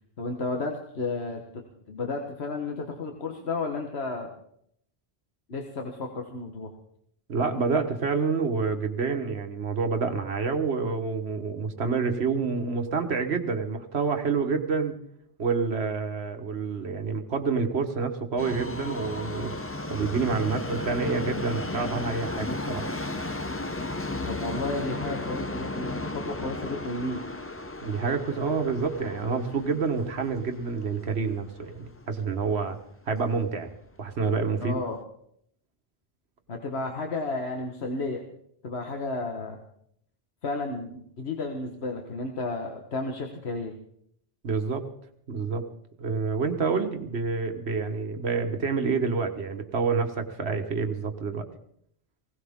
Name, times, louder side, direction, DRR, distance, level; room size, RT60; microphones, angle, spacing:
voice 1, 0.2-4.3 5.5-6.7 24.3-27.2 34.6-35.0 36.5-38.2 38.6-39.6 40.4-43.7, left 3 dB, 80° left, 2 dB, 1.6 m, -32 dB
voice 2, 7.3-15.0 15.4-19.5 19.9-22.9 27.8-32.8 33.1-33.7 34.0-34.7 44.4-44.8 45.3-45.7 46.0-51.4, right 4 dB, 80° right, 6 dB, 1.6 m, -28 dB
Subway metro underground, 18.4-32.5 32.8-32.9 33.7-33.8 34.1-34.2 34.8-34.9, left 2 dB, 15° left, 0.6 m, -35 dB
20.5 x 17.5 x 3.6 m, 0.70 s
omnidirectional pair, 1.1 m